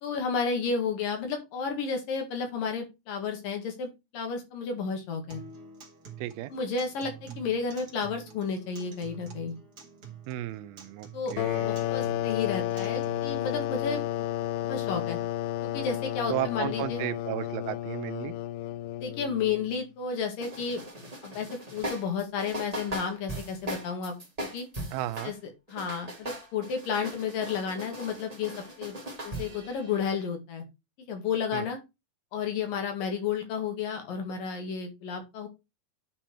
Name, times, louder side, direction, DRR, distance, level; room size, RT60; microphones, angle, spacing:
voice 1, 0.0-5.4 6.5-9.6 11.1-14.0 14.7-15.2 15.6-17.0 19.0-20.8 21.2-24.7 25.2-25.4 25.7-29.0 29.2-30.6 31.1-31.8 32.3-35.5, left 6 dB, 70° left, 3.6 m, -32 dB
Acoustic guitar, 5.3-13.3, right 6 dB, 35° right, 1.9 m, -47 dB
voice 2, 6.2-6.5 10.3-11.8 16.3-18.3 24.9-25.3 31.5-31.7, right 14 dB, 85° right, 2.5 m, -34 dB
sound 1, 11.4-19.8, left 13 dB, 90° left, 1.8 m, -32 dB
sound 2, 20.4-25.3 25.7-30.3, right 1 dB, 15° right, 1.6 m, -39 dB
10.0 x 4.5 x 4.5 m
omnidirectional pair, 4.3 m